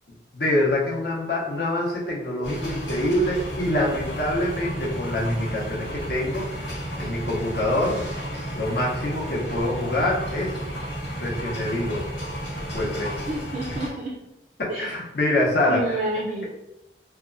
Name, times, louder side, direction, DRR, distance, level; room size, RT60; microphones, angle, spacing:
voice 1, 0.3-6.5 7.0-8.0 8.6-10.5 11.2-12.0 12.7-13.1 13.7-13.8 14.8-16.0, left 1 dB, 60° left, -4 dB, 0.7 m, -25 dB
sound 1, 2.4-13.9, right 1 dB, 85° left, 1.4 m, -32 dB
voice 2, 13.3-14.2 14.7-14.9 15.7-16.4, right 2 dB, 40° right, -3 dB, 0.3 m, -29 dB
2.8 x 2.2 x 2.4 m, 0.91 s
head